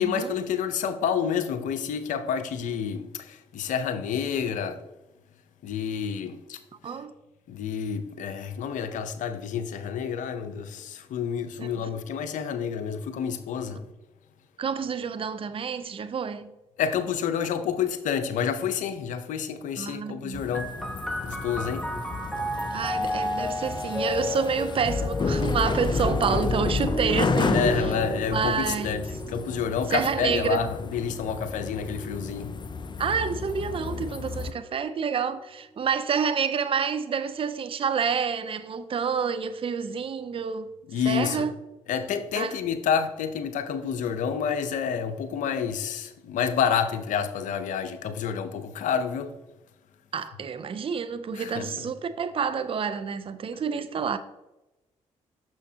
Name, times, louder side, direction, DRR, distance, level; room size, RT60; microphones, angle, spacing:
voice 1, 0.0-4.8 5.6-6.9 7.5-13.8 16.8-20.7 21.2-21.9 27.4-32.5 40.9-41.5 41.9-49.3 51.3-51.9, left 7 dB, 75° left, 0.6 m, -29 dB
voice 2, 14.6-16.5 19.8-20.4 22.7-27.6 28.3-29.0 29.9-30.7 33.0-40.7 41.1-41.5 42.3-42.5 50.1-54.2, right 6 dB, 45° right, 0.5 m, -28 dB
sound 1, 20.3-34.5, left 4 dB, 35° left, 0.5 m, -31 dB
sound 2, 20.5-33.8 34.6-35.4, equal, 5° left, 1.1 m, -34 dB
6.3 x 6.2 x 2.8 m
supercardioid pair, 55°, 13 cm